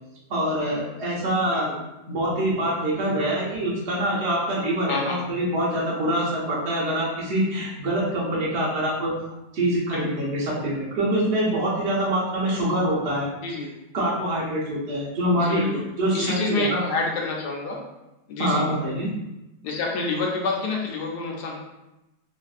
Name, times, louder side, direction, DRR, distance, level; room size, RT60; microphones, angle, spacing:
voice 1, 0.3-1.7 2.1-9.1 9.5-13.3 13.9-15.6 16.0-16.9 18.4-19.1, right 1 dB, 50° right, -7 dB, 1.1 m, -25 dB
voice 2, 3.1-3.5 4.9-5.2 9.9-10.3 13.4-13.7 15.4-15.8 16.1-17.8 18.3-18.6 19.6-21.6, left 3 dB, 85° left, 0 dB, 1.2 m, -28 dB
3.2 x 2.6 x 2.4 m, 0.95 s
omnidirectional pair, 1.7 m